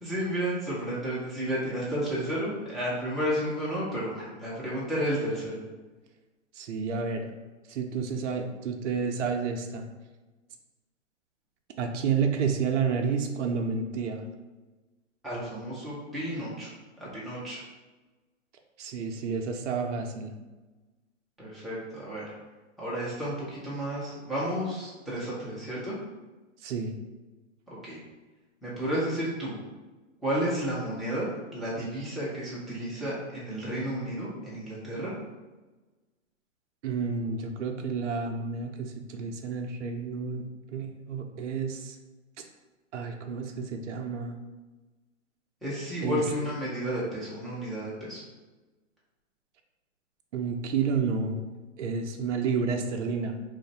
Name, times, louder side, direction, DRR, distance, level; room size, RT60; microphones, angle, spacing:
voice 1, 0.0-5.6 15.2-16.7 17.0-17.6 21.4-22.3 22.8-25.9 27.7-28.0 28.6-29.6 30.2-35.1 45.6-48.2, equal, ahead, -10 dB, 0.6 m, -32 dB
voice 2, 6.6-7.3 7.7-9.9 11.8-14.2 18.8-20.3 26.6-26.9 36.8-42.0 42.9-44.4 46.0-46.2 50.3-51.5 51.8-53.3, right 5 dB, 65° right, 4 dB, 0.6 m, -30 dB
3.1 x 2.5 x 4.0 m, 1.2 s
hypercardioid pair, 140°, 39 cm